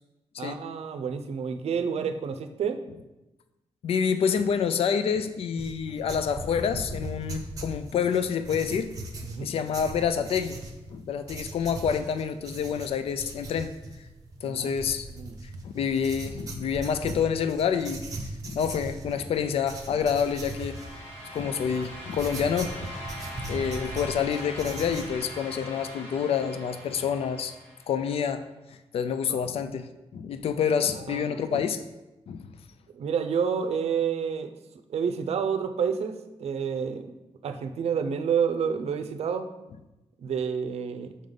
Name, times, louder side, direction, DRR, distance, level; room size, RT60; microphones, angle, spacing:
voice 1, 0.4-2.8 9.2-9.5 14.4-14.7 15.2-15.4 29.3-29.4 31.1-31.6 32.9-34.6 34.9-37.1 37.4-39.5 40.2-41.1, right 6 dB, 65° right, 8 dB, 0.5 m, -29 dB
voice 2, 3.8-8.9 9.4-10.6 10.9-13.7 14.4-15.1 15.6-18.0 18.4-20.8 21.3-22.9 23.5-27.5 27.9-31.8 32.3-32.5, left 7 dB, 60° left, 10 dB, 0.4 m, -28 dB
sound 1, 5.6-25.2, right 2 dB, 30° right, 0.8 m, -39 dB
sound 2, 19.3-28.2, equal, 20° left, 1.6 m, -42 dB
6.4 x 3.8 x 5.2 m, 0.99 s
wide cardioid pair, 170°, 11 cm